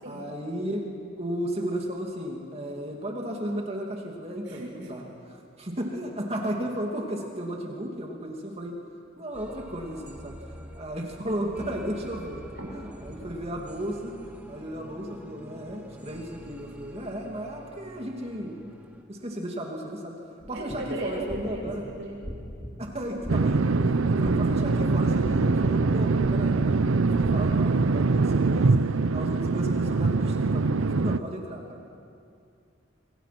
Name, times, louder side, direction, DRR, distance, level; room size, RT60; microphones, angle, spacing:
voice 1, 0.0-0.9 1.2-8.8 9.2-10.3 10.7-18.7 19.1-20.1 20.4-21.8 22.8-28.7 29.1-32.0, right 1 dB, 30° right, 0 dB, 2.6 m, -34 dB
voice 2, 4.5-4.9 12.6-12.7 20.5-22.2, right 1 dB, 65° right, -2 dB, 7.2 m, -36 dB
sound 1, 9.3-19.0, equal, 10° right, 1.7 m, -46 dB
sound 2, 20.4-28.1, equal, 15° left, 2.8 m, -41 dB
sound 3, 23.3-31.2, right 3 dB, 80° right, 0.6 m, -23 dB
26.0 x 25.0 x 6.0 m, 2.4 s
head